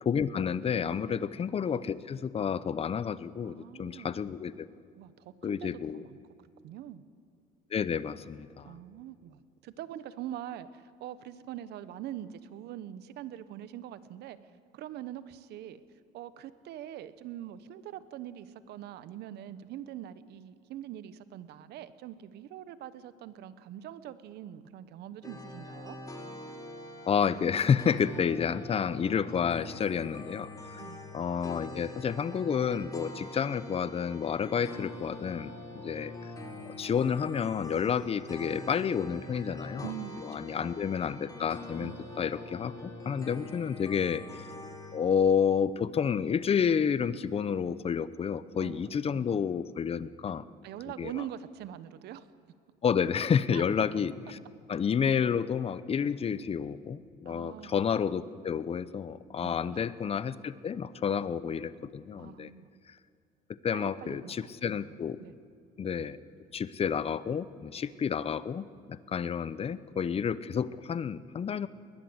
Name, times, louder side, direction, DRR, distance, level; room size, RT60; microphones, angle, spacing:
voice 1, 0.0-4.7 5.4-6.0 7.7-8.7 27.1-30.8 31.1-36.1 36.7-39.9 40.2-44.5 44.9-50.4 51.0-51.1 52.8-54.4 54.7-62.5 63.6-65.2 65.8-66.2 66.5-71.7, left 7 dB, 35° left, 16 dB, 0.8 m, -30 dB
voice 2, 3.4-4.1 4.9-6.2 6.6-7.0 8.6-14.4 14.7-15.8 16.1-26.0 30.8-31.2 39.8-40.7 41.8-42.0 48.6-49.2 50.6-52.3 53.5-53.6 57.2-57.8 59.4-59.8 62.2-62.7 63.7-65.4, right 11 dB, 80° right, 14 dB, 1.1 m, -43 dB
sound 1, 25.2-45.0, left 2 dB, 20° left, 3.7 m, -44 dB
20.5 x 20.0 x 8.0 m, 2.2 s
cardioid pair, 110°, 17 cm